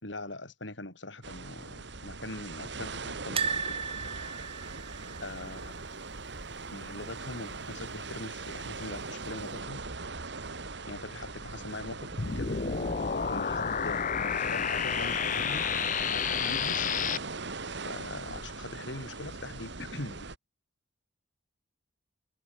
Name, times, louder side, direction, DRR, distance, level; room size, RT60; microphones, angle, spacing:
voice 1, 0.0-3.9 5.2-5.7 6.7-9.8 10.9-12.6 13.2-15.7 16.0-16.9 17.7-20.2, left 2 dB, 65° left, 6.5 m, -42 dB
sound 1, 1.2-20.4, right 4 dB, 65° right, 2.2 m, -41 dB
sound 2, 3.4-6.4 6.7-6.9 7.1-7.2 8.5-9.0 9.5-9.6, right 5 dB, 30° right, 3.5 m, -36 dB
sound 3, 12.2-17.2, left 6 dB, 45° left, 0.8 m, -30 dB
head